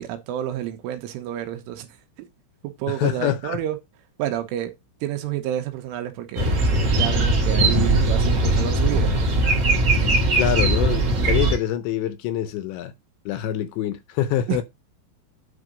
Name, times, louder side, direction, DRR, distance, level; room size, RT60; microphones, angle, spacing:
voice 1, 0.0-1.9 2.6-3.8 4.2-4.7 5.0-9.1 14.5-14.6, right 11 dB, 85° right, 3.6 m, -29 dB
voice 2, 2.9-3.6 10.3-12.9 13.3-14.6, left 12 dB, 80° left, 2.8 m, -25 dB
sound 1, 6.4-11.6, right 2 dB, 40° right, 2.7 m, -20 dB
9.7 x 3.9 x 5.1 m
omnidirectional pair, 5.6 m